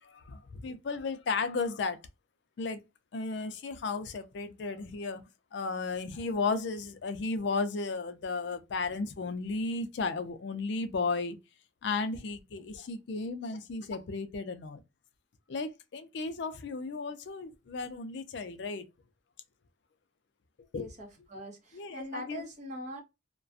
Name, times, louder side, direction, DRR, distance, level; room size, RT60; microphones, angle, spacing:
voice 1, 0.0-2.0 2.6-2.8 3.1-11.4 11.8-14.8 15.5-18.8 20.7-20.9 21.7-22.4, left 4 dB, 60° left, 0.4 m, -34 dB
voice 2, 20.8-23.0, equal, 40° right, 0.9 m, -42 dB
2.4 x 2.2 x 2.5 m
head